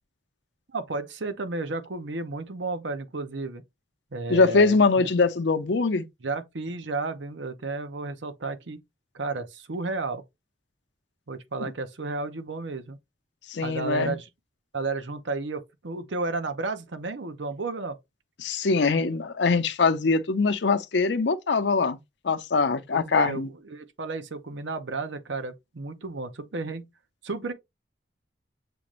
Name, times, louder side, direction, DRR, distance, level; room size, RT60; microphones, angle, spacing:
voice 1, 0.7-3.6 4.1-5.1 6.2-8.8 9.1-10.2 11.3-13.0 13.6-14.3 14.7-18.0 22.9-26.9 27.2-27.5, right 3 dB, 85° right, 0.8 m, -32 dB
voice 2, 4.3-6.1 11.6-11.7 13.5-14.2 18.4-22.0 22.2-23.5, left 4 dB, 75° left, 0.6 m, -23 dB
6.9 x 2.5 x 3.0 m
head